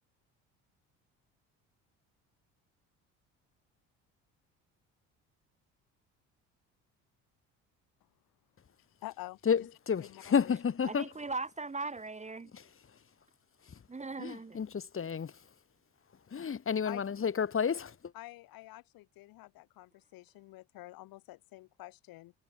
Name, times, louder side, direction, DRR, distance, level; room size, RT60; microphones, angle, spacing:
voice 1, 8.9-9.7 10.1-10.6 16.9-17.0 18.1-22.3, left 18 dB, 70° left, 4.2 m, -48 dB
voice 2, 9.5-11.1 12.5-13.0 13.6-13.8 14.2-15.5 16.3-18.1, left 7 dB, 35° left, 3.8 m, -31 dB
voice 3, 10.9-12.5 13.9-14.6, right 3 dB, 20° right, 1.7 m, -39 dB
supercardioid pair, 75°, 36 cm